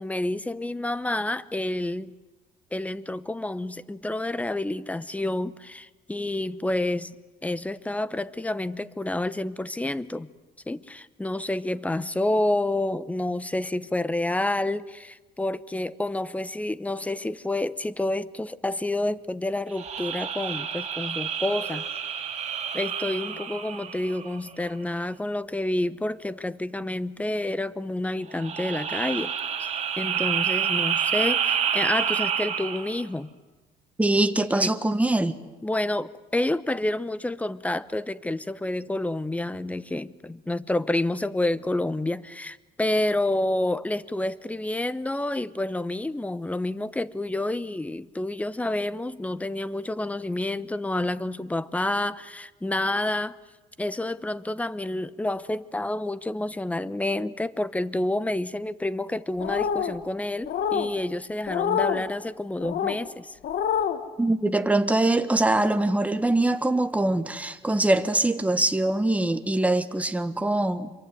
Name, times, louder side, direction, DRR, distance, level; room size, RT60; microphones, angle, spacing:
voice 1, 0.0-2.1 2.7-7.2 7.4-10.3 10.7-22.3 22.7-29.3 29.6-33.3 34.6-34.7 35.6-53.4 53.8-63.4, left 1 dB, 10° left, 0.9 m, -29 dB
sound 1, 19.7-24.5 28.3-33.0, right 8 dB, 40° right, 2.9 m, -28 dB
voice 2, 34.0-35.4 64.2-70.9, right 2 dB, 10° right, 1.5 m, -23 dB
sound 2, 59.4-60.0 60.5-60.9 61.5-62.0 62.6-63.0 63.4-64.0, left 8 dB, 65° left, 1.9 m, -26 dB
26.5 x 23.5 x 9.4 m
cardioid pair, 110°, 17 cm